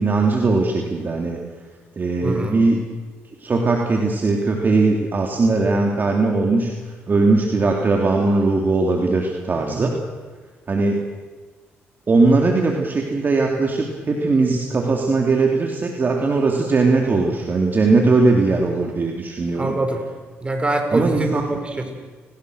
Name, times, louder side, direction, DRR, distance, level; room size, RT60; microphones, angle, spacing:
voice 1, 0.0-1.4 2.0-2.8 3.4-6.7 7.1-9.9 10.7-11.0 12.1-19.7 20.9-21.4, right 3 dB, 40° right, 1 dB, 3.3 m, -19 dB
voice 2, 2.2-2.6 9.7-9.9 19.5-20.0 20.4-21.9, right 2 dB, 20° right, 4 dB, 5.6 m, -24 dB
30.0 x 19.5 x 6.6 m, 1.4 s
cardioid pair, 75°, 5 cm